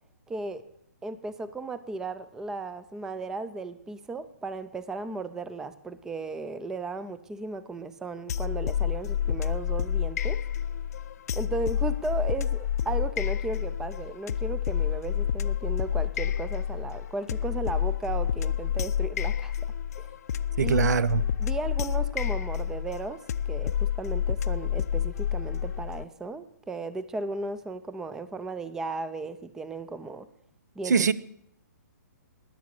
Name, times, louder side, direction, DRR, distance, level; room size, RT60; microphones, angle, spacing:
voice 1, 0.3-0.7 1.0-10.4 11.3-19.5 20.0-20.1 20.6-20.9 21.4-23.2 23.5-30.3 30.8-31.0, right 3 dB, 5° right, 14 dB, 0.4 m, -35 dB
sound 1, 8.3-26.0, left 9 dB, 65° left, 0.6 m, -29 dB
voice 2, 20.6-21.2 30.8-31.1, right 6 dB, 75° right, 19 dB, 0.8 m, -23 dB
20.0 x 7.6 x 7.1 m, 0.76 s
hypercardioid pair, 155°, 9 cm